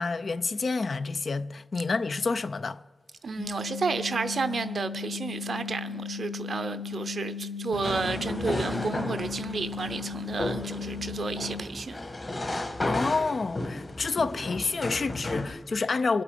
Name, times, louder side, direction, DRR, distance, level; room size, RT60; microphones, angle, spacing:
voice 1, 0.0-2.8 12.4-16.2, left 4 dB, 55° left, 0.4 m, -29 dB
voice 2, 3.2-12.0, right 4 dB, 60° right, 0.6 m, -32 dB
sound 1, 3.4-11.6, left 6 dB, 80° left, 1.2 m, -36 dB
sound 2, 7.7-15.5, left 2 dB, 35° left, 1.4 m, -34 dB
24.5 x 8.4 x 5.2 m
wide cardioid pair, 140°, 0 cm